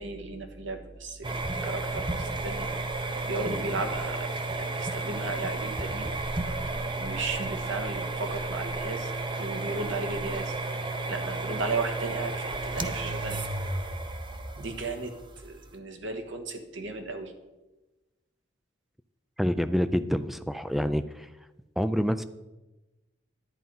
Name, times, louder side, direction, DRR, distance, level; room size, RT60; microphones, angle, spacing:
voice 1, 0.0-6.1 6.6-10.6 11.1-13.4 14.6-17.3, right 3 dB, 70° right, 5 dB, 1.5 m, -35 dB
sound 1, 1.2-15.7, right 2 dB, 25° right, 0.7 m, -33 dB
voice 2, 19.4-21.3 21.8-22.2, equal, ahead, 12 dB, 0.3 m, -27 dB
11.0 x 9.2 x 5.5 m, 1.1 s
head